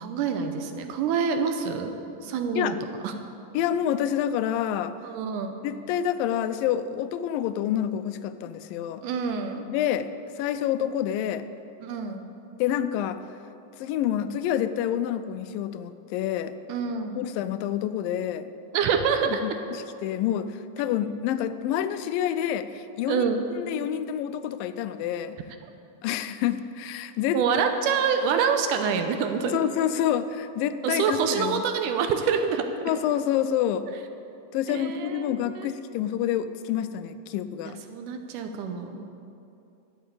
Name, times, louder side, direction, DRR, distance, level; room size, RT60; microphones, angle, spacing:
voice 1, 0.0-1.9 2.2-2.8 3.0-3.2 5.0-5.5 9.0-9.6 11.8-12.3 16.7-17.3 18.7-19.5 23.1-23.5 27.3-29.6 30.8-32.6 33.9-34.0 34.7-35.7 37.6-39.1, right 6 dB, 80° right, 6 dB, 2.1 m, -26 dB
voice 2, 3.5-5.0 5.6-9.0 9.7-10.1 10.4-11.5 12.6-13.2 13.8-16.5 17.2-18.5 19.4-23.3 23.6-25.4 26.0-27.4 29.5-31.7 32.9-33.9 34.5-37.8, left 10 dB, 90° left, 12 dB, 2.3 m, -28 dB
12.5 x 7.2 x 8.3 m, 2.7 s
omnidirectional pair, 3.9 m